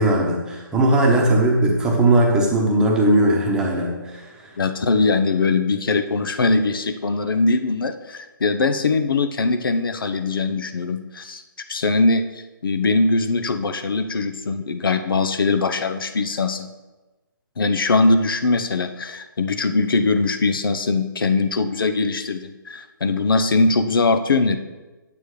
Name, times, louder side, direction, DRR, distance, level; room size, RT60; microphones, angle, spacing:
voice 1, 0.0-4.5, right 1 dB, 5° right, -1 dB, 1.0 m, -18 dB
voice 2, 4.6-11.4 11.7-12.2 12.6-16.7 17.6-24.6, left 3 dB, 75° left, 8 dB, 0.8 m, -21 dB
9.0 x 8.6 x 3.2 m, 1.2 s
hypercardioid pair, 160°, 12 cm